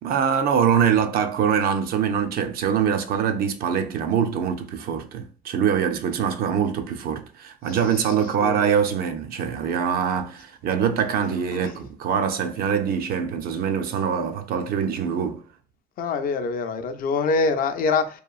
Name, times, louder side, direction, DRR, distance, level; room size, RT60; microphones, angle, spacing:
voice 1, 0.0-15.4, right 7 dB, 60° right, 0.4 m, -24 dB
voice 2, 7.7-8.6 11.5-11.7 16.0-18.2, left 4 dB, 55° left, 0.4 m, -25 dB
2.9 x 2.4 x 2.3 m
cardioid pair, 110°, 17 cm